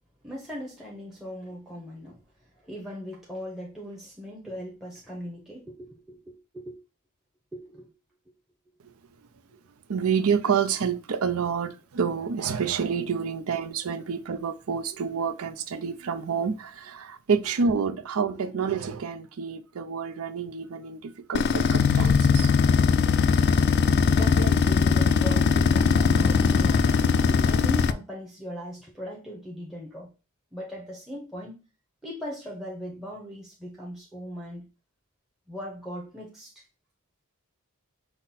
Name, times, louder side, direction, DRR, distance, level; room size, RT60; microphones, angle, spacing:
voice 1, 0.2-6.8 7.5-7.9 10.0-10.1 14.6-14.7 17.4-17.5 17.9-18.0 18.3-18.5 24.1-30.1 30.5-31.6 32.0-34.7 35.5-36.6, equal, ahead, 0.8 m, -39 dB
voice 2, 9.9-22.5, right 6 dB, 70° right, 0.5 m, -28 dB
sound 1, 21.3-27.9, left 5 dB, 50° left, 0.3 m, -20 dB
5.7 x 2.1 x 4.0 m
head